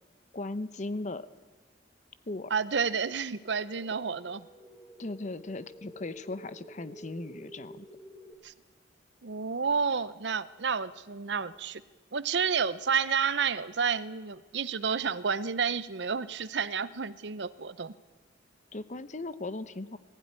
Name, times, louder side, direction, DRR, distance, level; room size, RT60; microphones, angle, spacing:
voice 1, 0.3-1.3 2.3-2.5 5.0-7.9 18.7-20.0, left 2 dB, 40° left, 14 dB, 0.8 m, -37 dB
voice 2, 2.5-4.4 8.4-8.5 9.2-11.8 12.1-17.9, right 6 dB, 65° right, 16 dB, 0.7 m, -30 dB
sound 1, 3.4-8.3, equal, 5° left, 1.7 m, -51 dB
20.0 x 15.5 x 9.7 m, 1.3 s
head